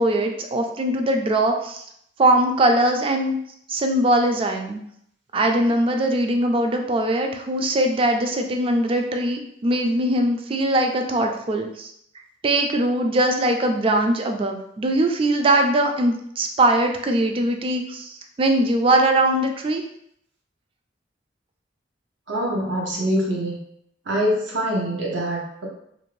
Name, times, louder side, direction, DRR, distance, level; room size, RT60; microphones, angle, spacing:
voice 1, 0.0-1.9 2.2-3.4 3.7-4.8 5.3-11.9 12.4-19.8, right 1 dB, 30° right, 4 dB, 0.3 m, -21 dB
voice 2, 22.3-23.6 24.1-25.7, equal, 80° right, -3 dB, 0.7 m, -24 dB
2.5 x 2.5 x 3.1 m, 0.72 s
head